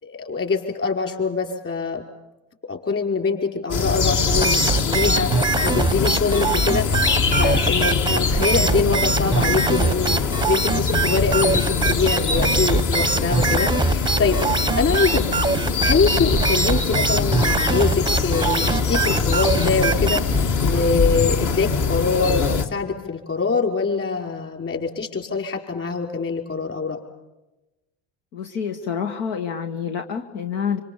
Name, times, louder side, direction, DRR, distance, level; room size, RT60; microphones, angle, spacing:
voice 1, 0.0-2.0 2.7-6.9 7.4-15.3 15.8-27.0, left 4 dB, 35° left, 3 dB, 5.3 m, -24 dB
sound 1, 3.7-22.6, left 4 dB, 50° left, 2.3 m, -23 dB
sound 2, 4.3-20.4, right 4 dB, 10° right, 0.8 m, -23 dB
voice 2, 28.3-30.8, left 7 dB, 75° left, 5 dB, 1.6 m, -27 dB
25.5 x 25.5 x 7.2 m, 1.0 s
hypercardioid pair, 75°, 40 cm